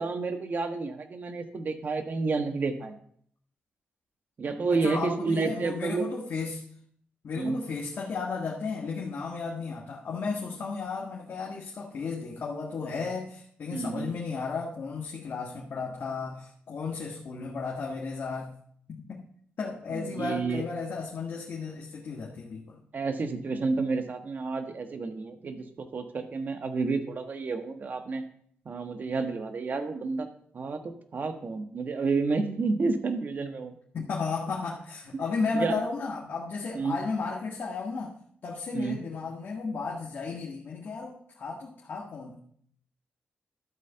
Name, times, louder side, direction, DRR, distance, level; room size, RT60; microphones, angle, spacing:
voice 1, 0.0-2.9 4.4-6.1 7.3-7.6 13.7-14.1 19.9-20.6 22.9-25.6 25.9-28.2 28.6-30.3 30.5-33.7 35.1-35.2 35.6-35.8 36.7-37.0 38.7-39.0, right 4 dB, 50° right, 6 dB, 1.3 m, -30 dB
voice 2, 4.7-6.6 7.2-18.5 18.9-19.2 19.6-22.8 33.9-38.2 38.4-42.4, left 4 dB, 65° left, -2 dB, 1.5 m, -34 dB
12.5 x 4.2 x 6.7 m, 0.63 s
cardioid pair, 90°, 4 cm